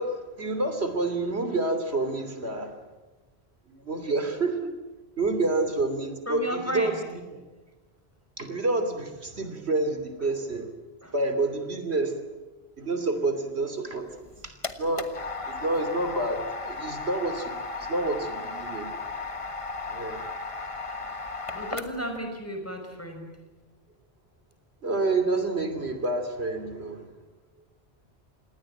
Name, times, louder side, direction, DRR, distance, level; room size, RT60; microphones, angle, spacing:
voice 1, 0.0-2.8 3.7-4.6 5.2-6.9 7.3-7.4 8.4-10.7 11.1-12.2 12.8-14.1 14.4-15.1 15.5-17.5 17.9-18.9 19.9-20.2 24.8-27.0, right 2 dB, 90° right, 8 dB, 3.3 m, -28 dB
voice 2, 6.3-7.0 11.0-11.1 21.5-23.3, equal, 15° left, 4 dB, 5.3 m, -33 dB
sound 1, 14.1-22.2, left 3 dB, 30° left, 1.5 m, -36 dB
27.5 x 19.5 x 8.9 m, 1.2 s
omnidirectional pair, 1.1 m